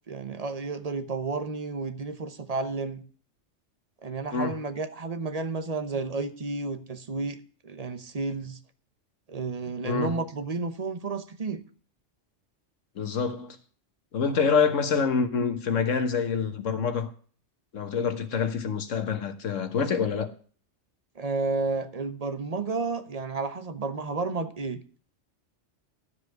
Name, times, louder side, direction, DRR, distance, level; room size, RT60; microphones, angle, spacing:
voice 1, 0.1-3.0 4.0-7.4 7.6-8.6 9.3-11.6 21.1-24.8, right 4 dB, 35° right, 0.9 m, -31 dB
voice 2, 9.8-10.1 12.9-13.6 14.1-17.1 17.7-20.3, left 6 dB, 85° left, 1.6 m, -26 dB
13.0 x 5.0 x 7.8 m
omnidirectional pair, 1.3 m